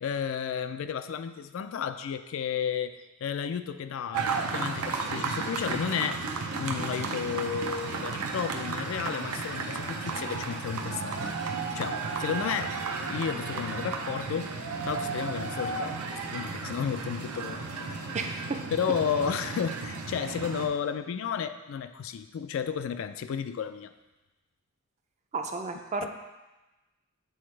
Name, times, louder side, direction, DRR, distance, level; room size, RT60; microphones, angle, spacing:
voice 1, 0.0-2.9 3.2-6.2 6.6-11.3 11.7-12.7 13.0-14.5 14.8-15.9 16.3-18.1 18.7-23.9, left 7 dB, 60° left, 10 dB, 0.3 m, -32 dB
sound 1, 4.1-20.7, right 4 dB, 90° right, 0.6 m, -33 dB
voice 2, 18.1-18.6 25.3-26.2, right 3 dB, 30° right, 4 dB, 0.4 m, -33 dB
7.9 x 4.1 x 3.2 m, 1.1 s
head